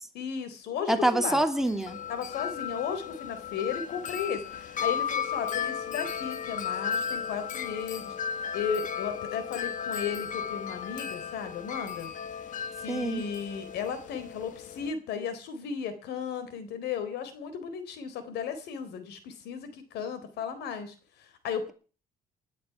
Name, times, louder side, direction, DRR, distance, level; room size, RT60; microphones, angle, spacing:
voice 1, 0.1-1.4 2.1-8.1 8.5-12.1 12.8-21.7, left 7 dB, 75° left, 12 dB, 3.8 m, -35 dB
voice 2, 0.9-2.0 12.9-13.2, right 1 dB, ahead, 5 dB, 2.8 m, -26 dB
Wind chime, 1.6-14.9, left 7 dB, 50° left, 1.6 m, -35 dB
20.0 x 12.5 x 5.9 m, 0.38 s
cardioid pair, 110°, 17 cm